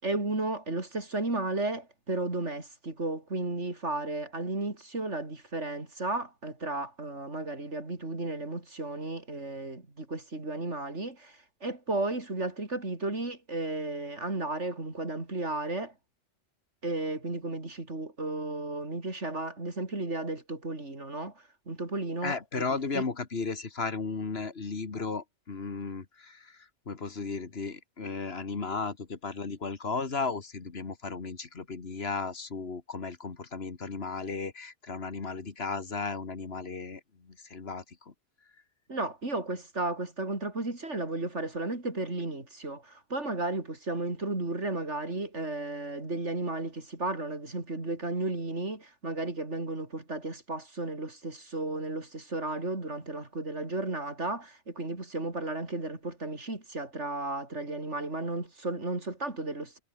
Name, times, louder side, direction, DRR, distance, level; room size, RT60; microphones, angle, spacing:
voice 1, 0.0-15.9 16.8-22.7 22.9-23.0 38.9-59.8, right 2 dB, 85° right, 4.9 m, -34 dB
voice 2, 22.2-26.6 26.9-38.1, left 4 dB, 60° left, 2.1 m, -35 dB
omnidirectional pair, 1.2 m